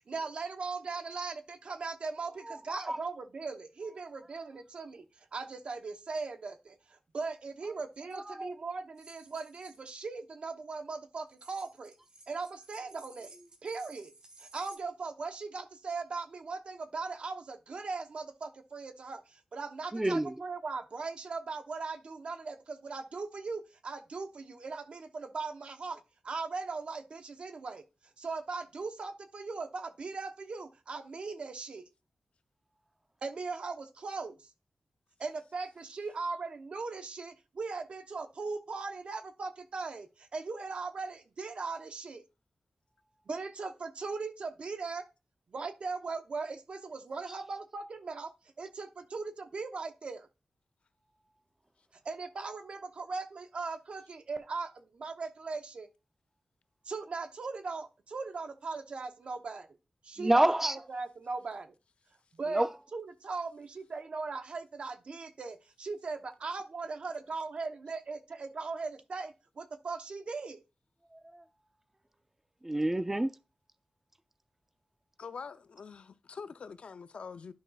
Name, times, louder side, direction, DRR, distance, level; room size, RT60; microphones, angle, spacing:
voice 1, 0.1-5.1 5.3-6.7 7.1-11.9 12.3-13.4 13.6-14.1 14.4-27.8 28.2-31.9 33.2-34.4 35.2-42.2 43.3-45.0 45.5-48.3 48.6-50.3 52.0-55.9 56.9-59.7 60.0-61.7 62.4-62.6 62.9-70.6, right 4 dB, 70° right, 0.9 m, -39 dB
voice 2, 2.4-3.0 8.1-8.5 19.9-20.3 60.2-60.8 62.5-62.7 71.1-71.4 72.6-73.3, right 1 dB, 15° right, 0.5 m, -29 dB
sound 1, 8.0-8.1 9.0-9.9 11.3-14.8, right 2 dB, 45° right, 1.1 m, -56 dB
voice 3, 75.2-77.5, left 5 dB, 75° left, 0.5 m, -44 dB
11.5 x 5.4 x 2.3 m
wide cardioid pair, 90°, 2 cm